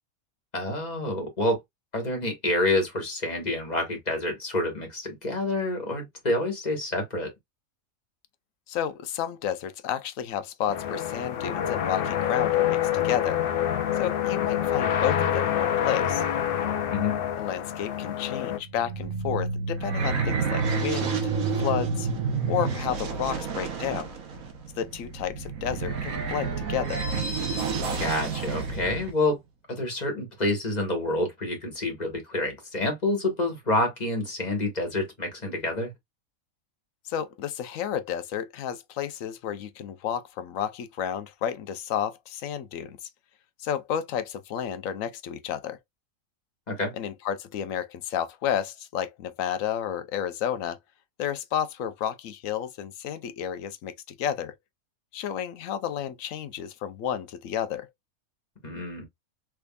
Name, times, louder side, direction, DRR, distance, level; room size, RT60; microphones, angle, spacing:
voice 1, 0.5-1.6 1.9-7.3 16.9-17.2 28.0-29.4 29.7-35.9 46.7-46.9 58.6-59.0, left 2 dB, 30° left, 1.5 m, -28 dB
voice 2, 8.7-13.4 13.9-16.2 17.4-21.2 21.6-22.1 22.5-24.1 24.8-27.0 37.0-43.1 43.6-45.8 46.9-50.8 51.2-54.5 55.1-57.9, left 9 dB, 75° left, 1.0 m, -31 dB
sound 1, 10.7-18.6, left 10 dB, 55° left, 0.6 m, -27 dB
sound 2, 18.6-29.1, right 4 dB, 80° right, 1.3 m, -29 dB
3.5 x 3.4 x 2.3 m
omnidirectional pair, 1.4 m